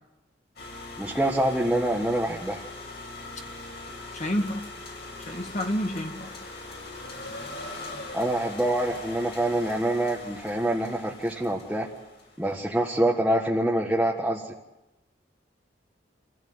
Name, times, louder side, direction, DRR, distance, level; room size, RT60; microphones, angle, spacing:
sound 1, 0.6-12.6, left 2 dB, 65° left, 6.6 m, -41 dB
voice 1, 1.0-2.6 8.1-11.9 12.4-14.5, right 1 dB, 5° right, -3 dB, 1.6 m, -25 dB
voice 2, 4.1-4.6 5.2-6.3, equal, 40° left, 3 dB, 2.1 m, -29 dB
26.0 x 16.0 x 8.0 m, 1.0 s
head